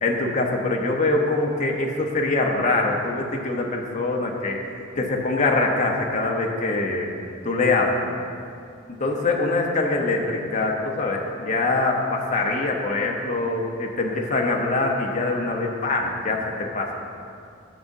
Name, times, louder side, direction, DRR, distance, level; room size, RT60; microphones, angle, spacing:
voice 1, 0.0-4.6 5.0-7.1 7.4-8.1 9.0-16.9, left 2 dB, 35° left, 0 dB, 0.8 m, -23 dB
11.5 x 7.2 x 2.7 m, 2.5 s
head